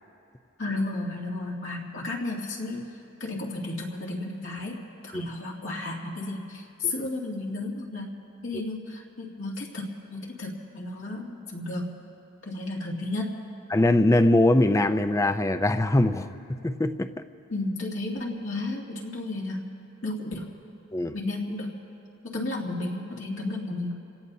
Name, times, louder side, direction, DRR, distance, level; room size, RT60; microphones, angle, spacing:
voice 1, 0.6-2.9 3.2-8.1 8.4-12.0 12.5-13.3 17.5-19.7 20.0-20.5 21.1-21.8 22.2-23.9, left 2 dB, 70° left, -2 dB, 2.5 m, -33 dB
voice 2, 13.7-16.3 16.6-17.1 20.9-21.1, left 1 dB, 15° left, 11 dB, 0.5 m, -21 dB
29.0 x 17.5 x 2.7 m, 2.6 s
head